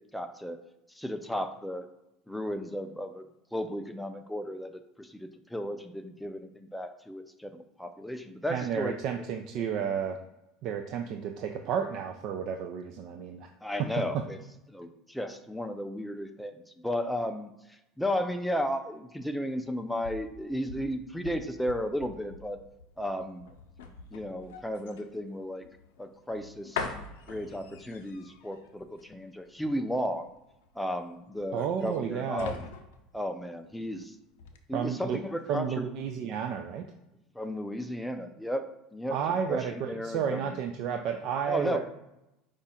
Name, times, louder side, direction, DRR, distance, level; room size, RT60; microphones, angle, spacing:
voice 1, 0.1-0.6 0.9-1.9 2.3-3.3 3.5-8.9 13.6-14.4 14.7-22.6 23.0-23.5 24.1-25.6 26.0-26.9 27.3-30.3 30.8-32.6 33.1-34.2 34.7-35.8 37.3-38.6 38.9-39.2 39.5-39.6 39.9-40.6 41.5-41.8, equal, 5° left, 7 dB, 0.4 m, -34 dB
voice 2, 8.5-10.2 10.6-13.5 14.0-14.2 31.5-32.5 34.7-35.2 35.5-36.9 39.1-41.8, right 7 dB, 55° right, 5 dB, 0.4 m, -32 dB
sound 1, 19.6-34.0 34.4-34.6, left 5 dB, 90° left, 0.6 m, -44 dB
4.9 x 2.4 x 4.2 m, 0.91 s
supercardioid pair, 120°, 0 cm